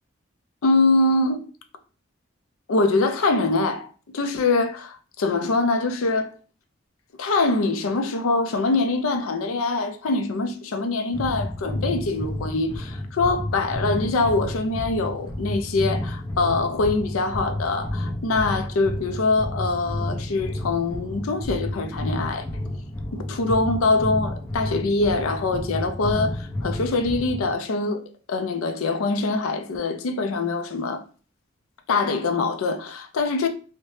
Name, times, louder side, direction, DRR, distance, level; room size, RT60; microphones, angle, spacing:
voice 1, 0.6-1.4 2.7-3.9 4.1-6.3 7.2-22.4 23.1-28.0 28.3-31.0 31.9-33.5, left 3 dB, 80° left, 0.4 m, -24 dB
sound 1, 11.1-27.5, left 1 dB, 15° left, 0.3 m, -31 dB
2.7 x 2.1 x 3.1 m
head